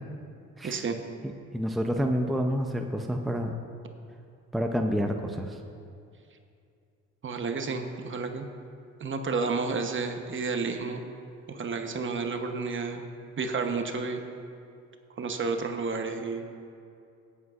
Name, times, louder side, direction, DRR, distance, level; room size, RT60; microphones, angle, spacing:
voice 1, 0.6-1.0 7.2-8.5 9.0-11.0 11.5-13.0 13.4-14.2 15.2-16.4, right 4 dB, 40° right, 5 dB, 1.0 m, -31 dB
voice 2, 1.2-3.6 4.5-5.6, equal, ahead, 3 dB, 0.6 m, -29 dB
18.5 x 8.2 x 2.5 m, 2.5 s
cardioid pair, 90°, 30 cm